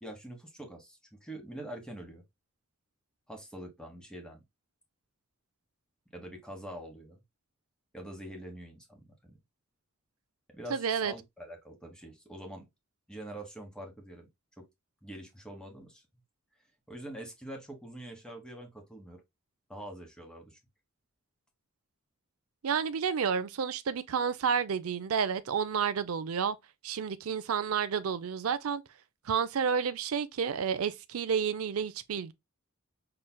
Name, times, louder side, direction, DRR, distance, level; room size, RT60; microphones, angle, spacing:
voice 1, 0.0-2.2 3.3-4.4 6.1-7.2 7.9-9.4 10.5-12.7 13.1-14.3 14.6-14.7 15.0-16.0 16.9-19.2 19.7-20.6, right 1 dB, 5° left, 1.3 m, -45 dB
voice 2, 10.7-11.1 22.6-26.6 26.8-28.8 29.3-32.3, right 6 dB, 85° right, 0.5 m, -30 dB
5.8 x 3.2 x 2.2 m
head